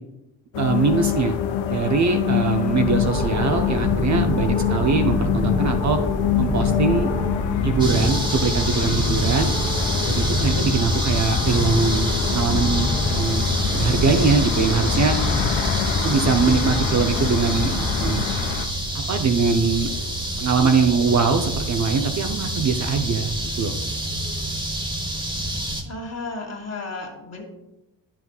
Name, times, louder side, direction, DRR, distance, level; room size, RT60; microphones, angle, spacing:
sound 1, 0.5-18.7, left 9 dB, 90° left, 0.6 m, -26 dB
voice 1, 0.6-1.4 1.7-6.0 6.4-7.1 7.6-9.5 10.1-13.5 13.7-15.2 16.0-18.2 18.9-19.9 20.4-23.3 23.6-23.7, right 5 dB, 40° right, 5 dB, 0.6 m, -22 dB
sound 2, 2.7-18.7, left 2 dB, 15° left, 0.7 m, -27 dB
sound 3, 7.8-25.8, right 1 dB, 10° right, 1.1 m, -27 dB
voice 2, 25.9-27.4, left 3 dB, 35° left, 1 dB, 1.8 m, -33 dB
9.2 x 5.9 x 2.4 m, 0.95 s
supercardioid pair, 70°, 44 cm